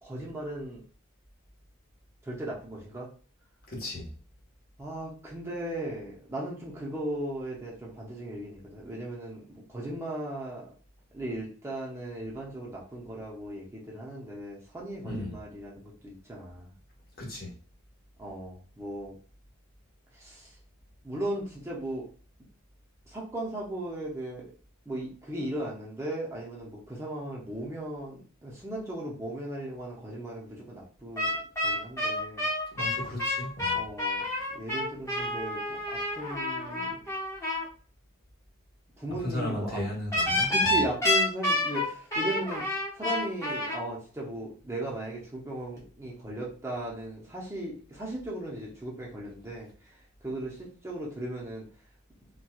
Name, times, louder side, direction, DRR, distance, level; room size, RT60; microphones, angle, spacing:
voice 1, 0.0-0.8 2.2-3.1 4.8-10.7 11.1-16.7 18.2-19.2 20.1-20.6 21.0-22.1 23.1-24.4 24.9-31.3 31.6-32.5 32.8-33.0 33.7-34.2 34.5-35.6 35.9-36.9 39.0-39.8 40.4-42.6 42.9-51.6, right 1 dB, 10° right, 0.6 m, -37 dB
voice 2, 3.7-4.1 15.0-15.3 17.2-17.5 32.7-33.8 39.2-40.5, left 1 dB, 45° left, 1.0 m, -35 dB
sound 1, 31.2-37.6 40.1-43.8, left 1 dB, 15° left, 0.9 m, -29 dB
4.2 x 2.2 x 2.3 m
head